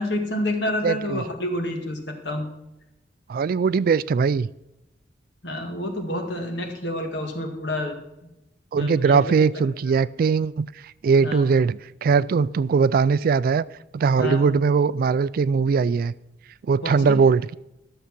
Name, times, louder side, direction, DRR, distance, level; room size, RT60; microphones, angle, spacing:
voice 1, 0.0-2.0 2.2-2.5 5.4-8.0 8.8-9.2 9.5-9.6 11.2-11.4 14.2-14.4 16.8-17.2, left 1 dB, 75° left, 3 dB, 1.9 m, -28 dB
voice 2, 0.8-1.2 3.3-4.5 8.7-10.7 11.0-13.6 13.9-16.1 16.7-17.6, right 5 dB, 55° right, 19 dB, 0.3 m, -20 dB
12.5 x 6.9 x 6.0 m, 0.91 s
head